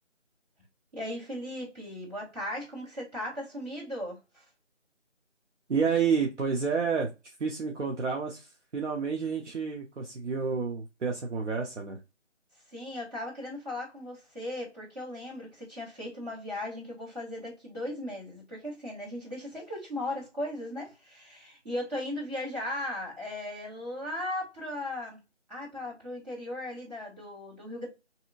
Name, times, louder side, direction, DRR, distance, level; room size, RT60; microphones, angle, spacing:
voice 1, 0.9-4.4 12.7-25.2 25.5-27.9, left 1 dB, 35° right, 1.8 m, -37 dB
voice 2, 5.7-7.1 7.4-12.0, right 5 dB, 70° right, 0.7 m, -29 dB
2.8 x 2.4 x 2.4 m
figure-of-eight pair, 175°, 36 cm